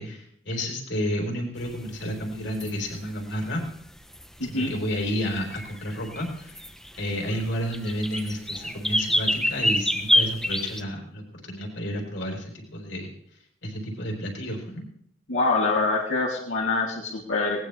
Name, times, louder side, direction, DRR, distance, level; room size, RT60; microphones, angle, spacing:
voice 1, 0.0-3.6 4.5-6.6 6.9-13.1 13.6-14.8, equal, 65° left, 1 dB, 4.2 m, -31 dB
sound 1, 1.6-10.8, left 1 dB, ahead, 0.9 m, -27 dB
voice 2, 4.4-4.8 15.3-17.7, left 3 dB, 90° left, -3 dB, 2.9 m, -25 dB
20.0 x 18.5 x 3.4 m, 0.67 s
head